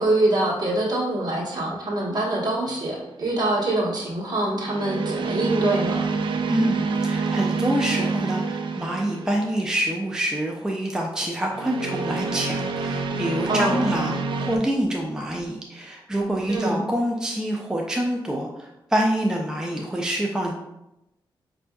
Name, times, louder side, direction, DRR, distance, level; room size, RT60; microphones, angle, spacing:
voice 1, 0.0-6.1 13.5-13.9 16.5-16.8, right 1 dB, 50° right, -4 dB, 1.3 m, -24 dB
sound 1, 2.7-3.0 4.6-9.7 11.5-14.6, right 4 dB, 65° right, 0.4 m, -27 dB
voice 2, 6.5-20.5, right 1 dB, 5° right, 0 dB, 0.4 m, -26 dB
5.3 x 2.6 x 2.3 m, 0.90 s
cardioid pair, 75°, 9 cm